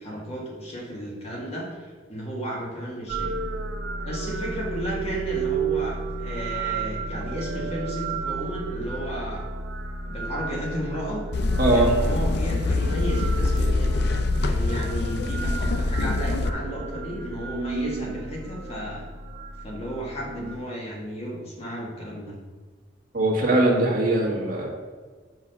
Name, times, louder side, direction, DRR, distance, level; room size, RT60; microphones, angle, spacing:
voice 1, 0.0-3.3 4.0-9.5 10.0-11.2 11.7-19.0 19.6-22.3, equal, 35° left, -3 dB, 1.6 m, -33 dB
sound 1, 3.1-20.6, right 4 dB, 75° right, 0.6 m, -33 dB
sound 2, 11.3-16.5, left 2 dB, 60° left, 0.5 m, -24 dB
voice 2, 11.6-11.9 23.1-24.7, right 2 dB, 50° right, -3 dB, 1.6 m, -21 dB
5.8 x 4.7 x 5.2 m, 1.5 s
head